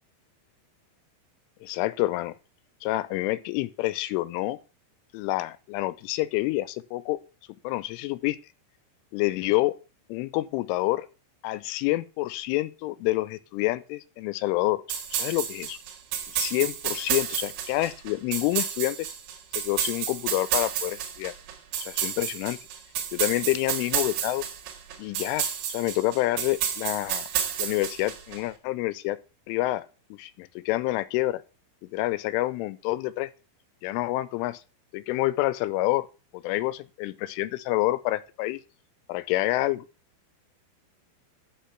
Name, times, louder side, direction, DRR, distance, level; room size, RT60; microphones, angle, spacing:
voice 1, 1.6-2.3 2.8-4.6 5.1-7.2 7.6-8.4 9.1-9.8 10.1-11.1 11.4-14.8 15.1-15.8 16.3-19.1 19.6-21.3 21.8-22.6 23.1-24.4 25.0-27.3 27.6-29.2 29.5-31.4 31.8-33.3 33.8-34.6 34.9-36.1 36.3-38.6 39.1-39.9, left 17 dB, 85° left, 3.2 m, -28 dB
sound 1, 14.9-28.4, right 9 dB, 80° right, 4.2 m, -31 dB
13.5 x 5.3 x 5.8 m
omnidirectional pair, 5.6 m